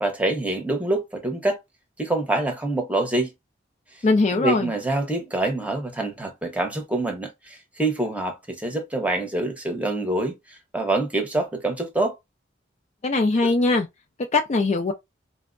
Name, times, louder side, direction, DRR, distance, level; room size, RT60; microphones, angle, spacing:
voice 1, 0.0-1.6 2.0-3.3 4.3-12.2 13.4-13.5, right 2 dB, 5° right, 0.7 m, -26 dB
voice 2, 4.0-4.7 13.0-13.9 14.3-14.9, left 3 dB, 35° left, 0.4 m, -20 dB
4.2 x 2.1 x 2.4 m
head